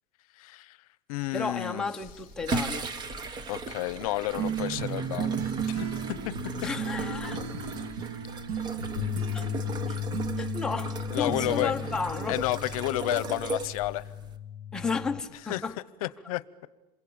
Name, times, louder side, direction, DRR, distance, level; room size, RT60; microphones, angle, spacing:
voice 1, 0.3-0.8 1.1-1.9 3.5-5.4 5.7-6.3 6.6-6.7 11.1-11.7 12.3-14.1 15.5-15.6 16.0-16.7, left 17 dB, 65° left, 0.9 m, -31 dB
voice 2, 1.3-2.9 6.6-7.4 9.3-9.5 9.9-10.0 10.4-12.4 14.7-15.8, left 4 dB, 5° left, 0.9 m, -33 dB
sound 1, 2.0-14.4, right 3 dB, 20° right, 1.3 m, -38 dB
sound 2, 4.4-12.8, right 6 dB, 50° right, 2.4 m, -35 dB
sound 3, 9.0-15.2, left 9 dB, 40° left, 1.2 m, -36 dB
27.5 x 22.0 x 8.8 m
supercardioid pair, 170°, 20 cm